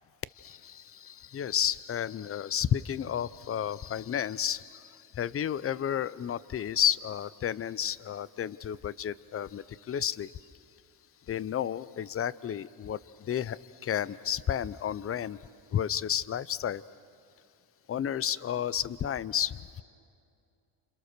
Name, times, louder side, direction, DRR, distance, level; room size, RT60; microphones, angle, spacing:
voice 1, 0.4-10.4 11.3-15.4 15.7-16.8 17.9-19.8, left 9 dB, 30° left, 19 dB, 0.6 m, -32 dB
29.5 x 27.0 x 6.7 m, 2.4 s
cardioid pair, 100°, 48 cm